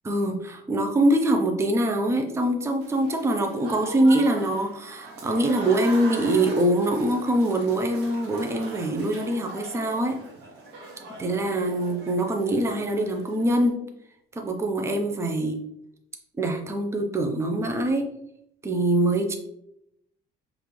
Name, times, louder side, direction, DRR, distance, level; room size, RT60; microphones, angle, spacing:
voice 1, 0.0-10.2 11.2-13.8 14.3-15.6 16.4-18.1 18.6-19.3, right 1 dB, 15° right, 3 dB, 0.5 m, -24 dB
Applause / Crowd, 2.8-13.7, right 2 dB, 75° right, 0.9 m, -41 dB
5.1 x 2.5 x 3.1 m, 0.79 s
cardioid pair, 110°, 17 cm